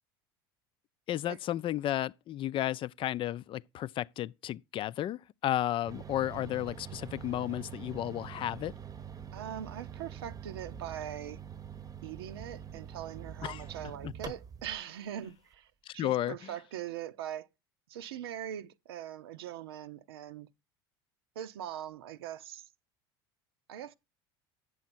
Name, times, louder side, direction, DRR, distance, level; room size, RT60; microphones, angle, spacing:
voice 1, 1.1-8.7 13.4-13.6 14.0-14.1 15.9-16.4, left 13 dB, 45° left, 0.5 m, -33 dB
sound 1, 5.9-14.8, right 8 dB, 30° right, 0.9 m, -45 dB
voice 2, 9.3-11.4 12.0-17.5 17.9-20.5 21.3-22.7 23.7-23.9, right 10 dB, 85° right, 0.8 m, -41 dB
9.4 x 7.2 x 4.3 m
hypercardioid pair, 80°, 12 cm